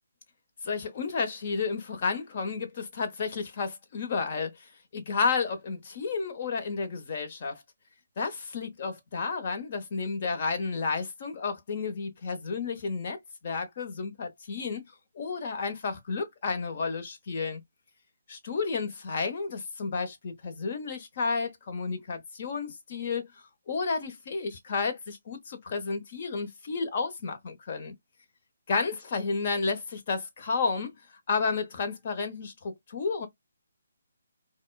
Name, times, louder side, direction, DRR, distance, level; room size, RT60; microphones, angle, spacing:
voice 1, 0.6-7.6 8.2-13.2 13.4-14.8 15.1-17.6 18.3-23.3 23.7-27.9 28.7-31.0 31.3-33.3, left 4 dB, 40° left, 0.9 m, -31 dB
4.1 x 2.2 x 2.3 m
hypercardioid pair, 165°, 0 cm